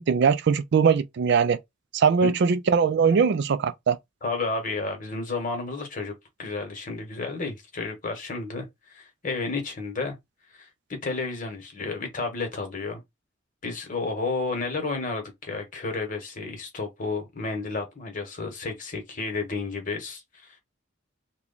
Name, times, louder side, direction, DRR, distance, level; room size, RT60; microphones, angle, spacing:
voice 1, 0.0-1.6 1.9-4.0, right 6 dB, 60° right, 0.3 m, -21 dB
voice 2, 4.2-6.1 6.4-10.2 10.6-13.0 13.6-20.6, left 3 dB, 40° left, 1.1 m, -31 dB
3.0 x 2.2 x 3.9 m
head